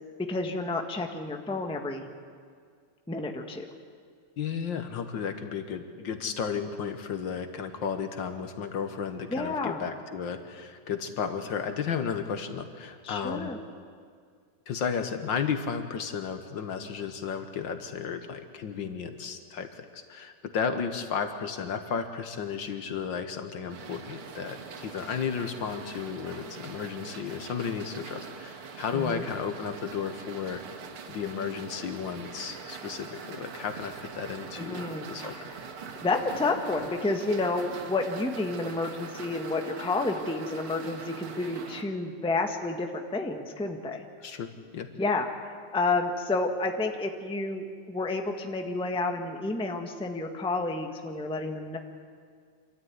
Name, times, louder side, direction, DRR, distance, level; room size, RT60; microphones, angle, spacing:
voice 1, 0.2-2.1 3.1-3.7 9.3-9.8 13.0-13.6 28.9-29.2 34.6-35.4 36.0-44.0 45.0-45.3 45.7-51.8, left 3 dB, 5° left, 4 dB, 1.0 m, -30 dB
voice 2, 4.4-13.5 14.7-30.6 31.1-35.5 44.2-44.9, left 6 dB, 60° left, 8 dB, 1.8 m, -33 dB
sound 1, 23.7-41.8, right 5 dB, 80° right, 2.4 m, -43 dB
26.5 x 13.0 x 9.5 m, 2.1 s
omnidirectional pair, 2.4 m